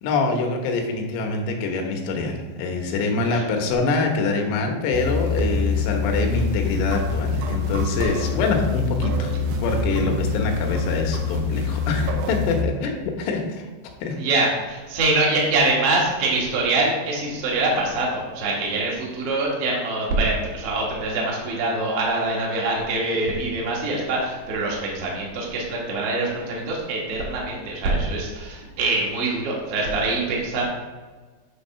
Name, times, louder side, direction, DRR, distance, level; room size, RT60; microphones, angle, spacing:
voice 1, 0.0-12.9 13.2-13.7 14.0-14.2, left 3 dB, 80° left, 3 dB, 3.4 m, -25 dB
sound 1, 4.9-12.6, left 4 dB, 80° right, 2.9 m, -25 dB
voice 2, 14.2-30.6, right 2 dB, 60° right, -2 dB, 1.5 m, -24 dB
9.8 x 3.5 x 5.5 m, 1.3 s
omnidirectional pair, 5.5 m